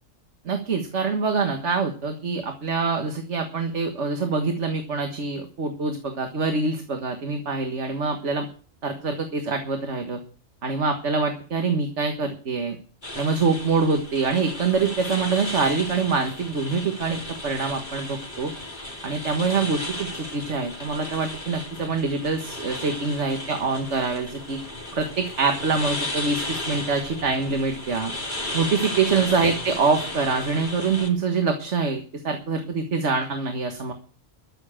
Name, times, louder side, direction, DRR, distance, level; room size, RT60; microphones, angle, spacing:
voice 1, 0.5-8.5 8.8-10.2 10.6-12.8 13.2-18.5 19.0-24.6 24.9-28.1 28.5-33.9, right 4 dB, 75° right, 5 dB, 1.8 m, -25 dB
sound 1, 13.0-31.1, left 1 dB, 40° left, 4.1 m, -34 dB
13.5 x 7.2 x 8.8 m, 0.41 s
omnidirectional pair, 1.2 m